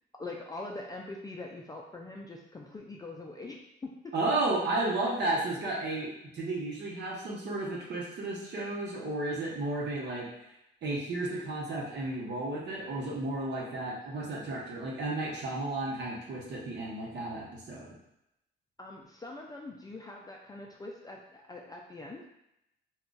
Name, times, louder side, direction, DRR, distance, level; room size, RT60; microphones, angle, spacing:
voice 1, 0.2-4.1 5.1-5.2 9.2-9.4 14.1-14.2 18.8-22.3, left 2 dB, 20° left, -1 dB, 0.4 m, -43 dB
voice 2, 4.1-10.5 10.8-18.0, right 2 dB, 60° right, -4 dB, 0.9 m, -33 dB
2.3 x 2.3 x 3.8 m, 0.84 s
cardioid pair, 90°, 20 cm